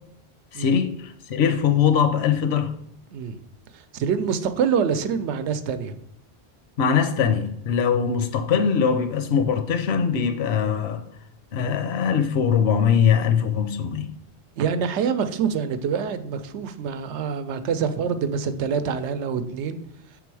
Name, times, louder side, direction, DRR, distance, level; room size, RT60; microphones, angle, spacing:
voice 1, 0.5-2.7 6.8-11.0 11.5-14.1, left 7 dB, 70° left, 0.9 m, -21 dB
voice 2, 3.7-5.9 14.6-19.8, right 6 dB, 85° right, 0.9 m, -26 dB
6.1 x 3.8 x 4.7 m
omnidirectional pair, 1.1 m